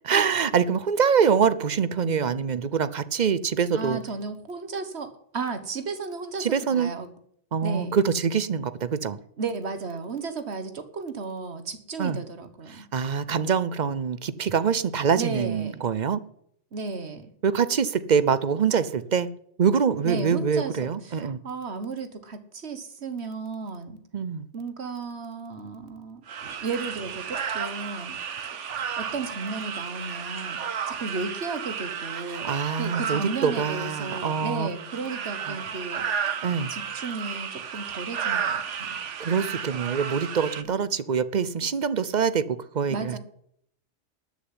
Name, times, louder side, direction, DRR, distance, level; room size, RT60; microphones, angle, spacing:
voice 1, 0.0-4.0 6.4-6.9 7.5-9.2 12.0-12.2 12.7-16.2 17.4-19.3 19.6-21.4 24.1-24.5 32.3-34.7 35.5-35.6 36.4-36.7 39.2-43.2, right 6 dB, 45° right, 0.7 m, -25 dB
voice 2, 3.7-7.1 7.6-8.0 9.4-12.9 15.2-15.9 16.7-17.3 20.0-24.0 24.5-26.2 26.6-28.2 29.0-30.6 30.9-36.4 36.7-39.0 40.7-40.9 42.9-43.2, right 4 dB, 65° right, 1.7 m, -34 dB
sound 1, 26.3-40.6, right 7 dB, 90° right, 1.3 m, -33 dB
12.5 x 6.9 x 9.7 m
omnidirectional pair, 1.2 m